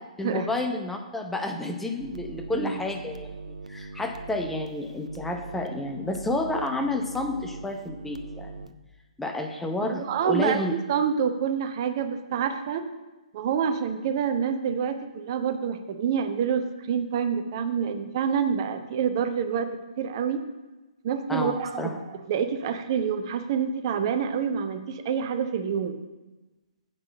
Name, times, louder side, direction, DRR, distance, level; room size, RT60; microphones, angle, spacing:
voice 1, 0.2-8.5 9.2-10.7 21.3-22.0, left 2 dB, 5° left, 3 dB, 0.7 m, -30 dB
sound 1, 2.0-8.7, right 3 dB, 75° right, 0.6 m, -41 dB
voice 2, 9.8-10.6 10.9-12.9 13.3-19.7 20.0-20.4 21.0-26.0, right 7 dB, 40° right, 8 dB, 0.8 m, -27 dB
7.7 x 5.8 x 7.5 m, 1.1 s
figure-of-eight pair, 125°, 4 cm